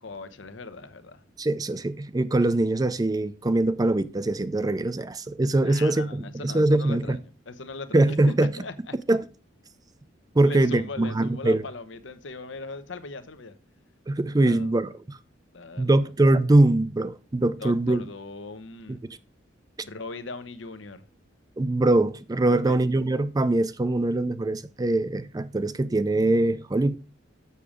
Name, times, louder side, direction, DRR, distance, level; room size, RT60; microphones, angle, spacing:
voice 1, 0.0-1.2 5.6-8.9 10.4-13.6 14.4-14.7 15.5-16.1 17.6-19.0 19.8-21.0 22.5-22.8, left 3 dB, 80° left, 0.9 m, -39 dB
voice 2, 1.4-7.2 7.9-8.5 9.1-9.2 10.3-11.6 14.1-15.2 15.8-18.1 21.6-27.0, right 2 dB, 20° right, 0.4 m, -23 dB
7.2 x 7.0 x 5.0 m
head